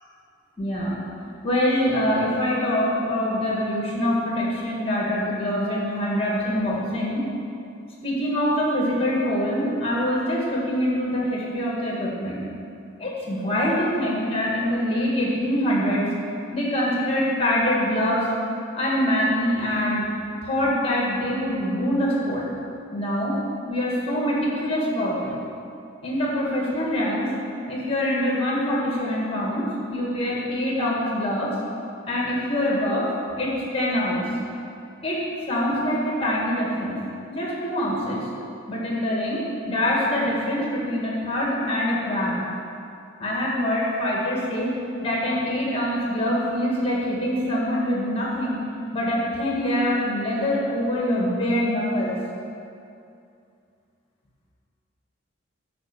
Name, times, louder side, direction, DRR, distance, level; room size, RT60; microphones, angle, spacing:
voice 1, 0.6-1.0 1.4-7.2 8.0-12.4 13.0-16.1 16.5-18.3 18.7-20.1 20.4-22.5 22.9-23.4 23.7-25.3 26.0-27.3 27.7-31.6 32.0-34.2 35.0-37.0 37.3-38.3 38.7-42.4 43.2-48.6 48.9-52.2, equal, 30° left, -4 dB, 1.8 m, -24 dB
11.0 x 5.3 x 7.0 m, 2.5 s
head